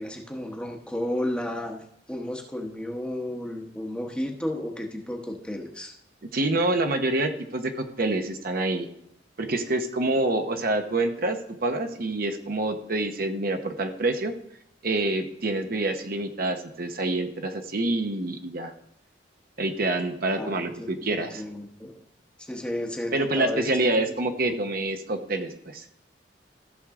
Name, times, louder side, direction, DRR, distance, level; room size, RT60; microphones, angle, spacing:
voice 1, 0.0-6.0 20.4-22.0 22.4-23.9 24.4-24.6, left 1 dB, 5° left, 2 dB, 1.0 m, -33 dB
voice 2, 6.3-8.9 9.4-14.3 14.8-18.7 19.6-21.4 23.1-25.8, right 2 dB, 55° right, 5 dB, 0.9 m, -27 dB
14.5 x 6.3 x 3.7 m, 0.76 s
head